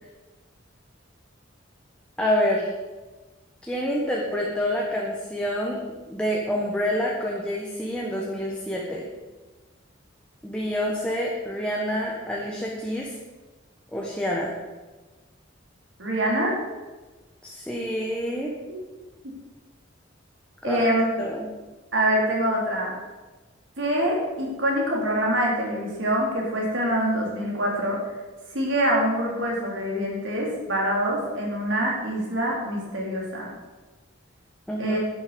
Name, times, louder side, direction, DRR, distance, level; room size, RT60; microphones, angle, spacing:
voice 1, 2.2-2.7 3.6-9.1 10.4-13.1 13.9-14.5 17.4-18.5 20.6-20.8 21.2-21.5 34.7-35.0, equal, 5° left, -3 dB, 1.5 m, -27 dB
voice 2, 16.0-16.6 20.6-21.1 21.9-22.9 23.8-28.0 28.5-33.5 34.8-35.0, right 1 dB, 70° right, -2 dB, 4.2 m, -25 dB
11.5 x 10.5 x 5.4 m, 1.2 s
head